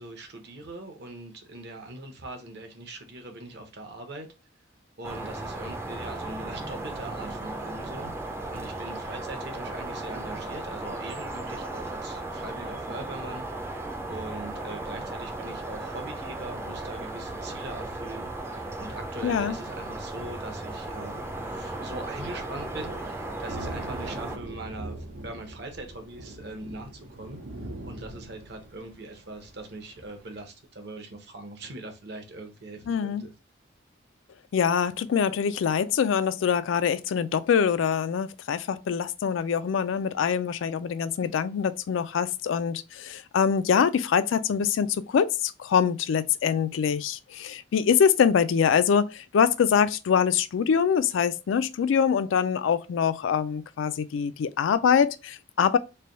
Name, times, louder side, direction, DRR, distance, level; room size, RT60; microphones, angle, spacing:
voice 1, 0.0-4.3 5.0-8.1 8.5-13.8 14.1-26.9 27.2-27.4 27.8-33.3, right 2 dB, 60° right, 0.9 m, -41 dB
sound 1, 5.0-24.4, right 2 dB, 15° right, 0.4 m, -36 dB
voice 2, 19.2-19.5 32.9-33.2 34.5-55.8, left 7 dB, 85° left, 0.3 m, -24 dB
Thunder, 20.8-30.4, right 1 dB, 90° right, 0.8 m, -43 dB
3.3 x 2.2 x 3.9 m
head